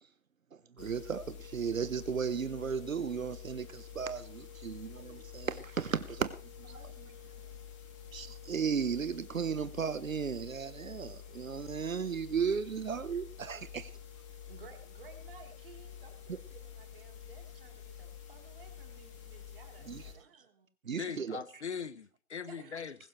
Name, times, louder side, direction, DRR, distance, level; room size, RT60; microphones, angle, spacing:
sound 1, 0.8-20.1, left 8 dB, 20° left, 2.9 m, -49 dB
voice 1, 0.8-7.1 8.1-13.9 19.9-20.0 20.8-21.4, right 6 dB, 70° right, 1.1 m, -35 dB
voice 2, 14.4-20.7 22.5-22.8, right 5 dB, 40° right, 3.6 m, -56 dB
voice 3, 20.9-22.9, left 6 dB, 55° left, 1.0 m, -40 dB
20.5 x 11.5 x 3.2 m
figure-of-eight pair, 160°, 41 cm